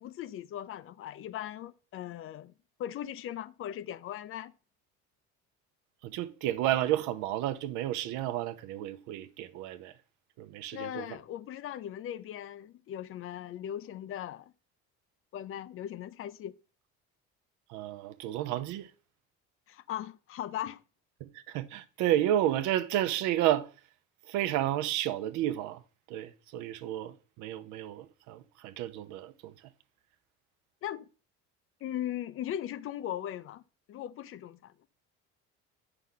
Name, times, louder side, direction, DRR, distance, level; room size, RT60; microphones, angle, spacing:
voice 1, 0.0-2.5 2.8-4.5 10.7-14.5 15.3-16.5 19.7-20.8 30.8-31.1 31.8-33.6 33.9-34.7, left 11 dB, 45° left, 0.5 m, -38 dB
voice 2, 6.0-9.9 10.4-11.0 17.7-18.9 21.2-23.7 24.3-25.8 26.1-29.5, right 13 dB, 75° right, 0.8 m, -31 dB
8.3 x 5.8 x 3.9 m
supercardioid pair, 105°, 30 cm